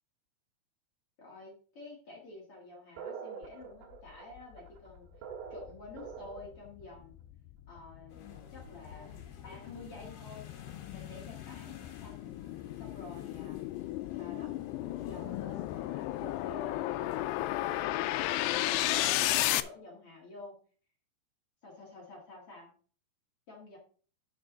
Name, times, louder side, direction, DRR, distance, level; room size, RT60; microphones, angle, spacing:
voice 1, 1.2-5.1 5.5-7.2 7.7-9.2 9.4-10.5 10.9-12.4 12.8-13.6 14.1-14.5 14.8-18.1 18.4-20.6 21.6-22.7 23.5-23.8, left 2 dB, 45° left, -3 dB, 2.3 m, -50 dB
sound 1, 3.0-6.7, right 7 dB, 80° right, 3.3 m, -45 dB
sound 2, 4.9-5.0 5.5-19.6, left 16 dB, 85° left, 2.7 m, -34 dB
sound 3, 8.1-17.9, left 8 dB, 65° left, 3.0 m, -52 dB
10.0 x 6.9 x 3.9 m, 0.43 s
omnidirectional pair, 4.7 m